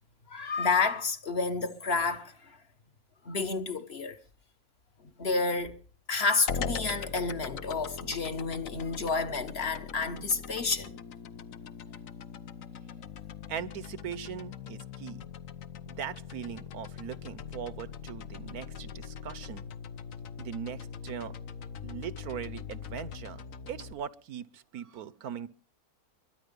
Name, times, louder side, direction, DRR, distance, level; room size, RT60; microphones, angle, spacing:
voice 1, 0.3-2.3 3.2-4.2 5.2-5.8 6.1-10.9, left 4 dB, 45° left, 1.4 m, -30 dB
sound 1, 6.5-23.9, left 6 dB, 65° left, 1.3 m, -41 dB
voice 2, 13.5-15.3 15.9-19.7 20.4-21.3 21.8-23.4 23.7-25.5, right 8 dB, 80° right, 1.4 m, -40 dB
22.5 x 10.0 x 5.3 m
omnidirectional pair, 1.6 m